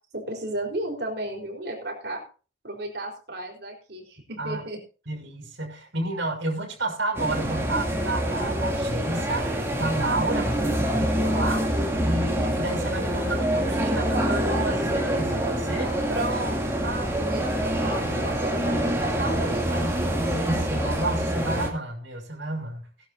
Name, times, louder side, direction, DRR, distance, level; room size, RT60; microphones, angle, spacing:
voice 1, 0.1-2.2 2.6-4.8 16.1-19.9, right 1 dB, 55° right, 1 dB, 4.3 m, -33 dB
voice 2, 4.4-4.7 5.1-11.7 12.0-15.9 20.3-22.8, right 2 dB, 70° right, 0 dB, 5.9 m, -31 dB
sound 1, 7.1-21.7, equal, 15° right, 2.6 m, -26 dB
18.5 x 12.0 x 2.7 m, 0.36 s
head